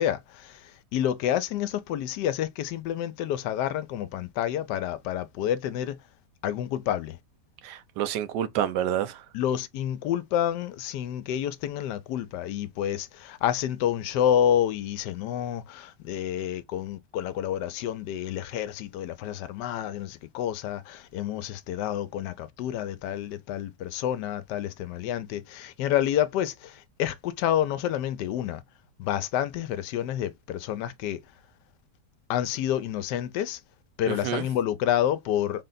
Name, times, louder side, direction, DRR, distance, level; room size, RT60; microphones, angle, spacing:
voice 1, 0.0-6.0 6.4-7.2 9.3-28.6 29.0-31.2 32.3-33.6 34.0-35.6, left 10 dB, 85° left, 1.2 m, -29 dB
voice 2, 7.6-9.2 34.1-34.5, right 10 dB, 85° right, 1.2 m, -28 dB
4.0 x 2.2 x 3.8 m
omnidirectional pair, 1.8 m